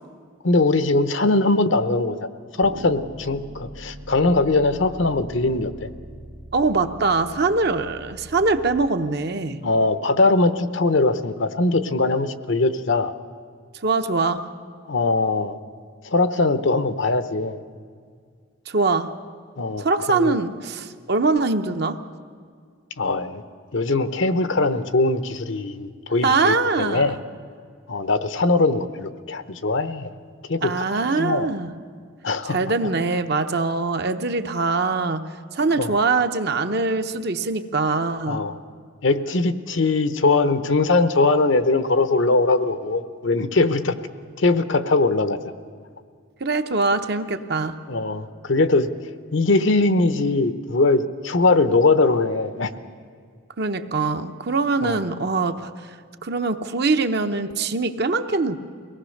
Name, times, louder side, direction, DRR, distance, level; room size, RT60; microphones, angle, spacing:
voice 1, 0.4-2.2 2.6-5.9 9.6-13.1 14.9-15.6 16.0-17.6 19.6-20.3 23.0-23.4 23.7-27.2 27.9-30.1 30.5-30.8 31.2-31.5 32.2-32.6 32.8-32.9 35.8-35.9 38.3-38.5 39.0-44.0 44.4-45.4 47.9-48.9 49.3-52.7 54.8-55.0, left 3 dB, 60° left, 11 dB, 0.8 m, -21 dB
sound 1, 2.6-8.9, right 1 dB, 85° right, 2.1 m, -41 dB
voice 2, 6.5-9.6 13.8-14.5 18.7-19.1 19.8-22.0 26.2-27.2 30.6-31.7 32.5-38.4 46.4-47.8 53.6-55.7 56.2-58.6, right 3 dB, 50° right, 8 dB, 0.9 m, -23 dB
23.5 x 18.5 x 6.6 m, 2.1 s
head